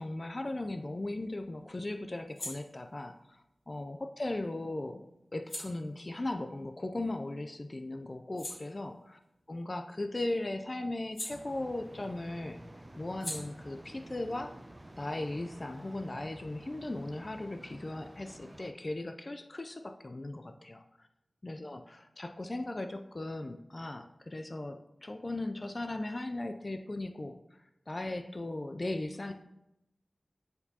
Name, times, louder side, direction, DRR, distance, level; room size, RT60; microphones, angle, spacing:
voice 1, 0.0-5.1 5.3-9.2 9.5-12.6 13.0-14.6 15.0-21.1 21.4-27.4 27.9-29.3, left 2 dB, 45° left, 7 dB, 0.4 m, -38 dB
sound 1, 0.6-7.5 7.9-12.1 12.3-15.8, left 1 dB, 70° left, 2.3 m, -49 dB
sound 2, 11.3-18.7, right 1 dB, 25° right, 0.5 m, -51 dB
9.2 x 4.4 x 2.8 m, 0.87 s
cardioid pair, 40°, 0 cm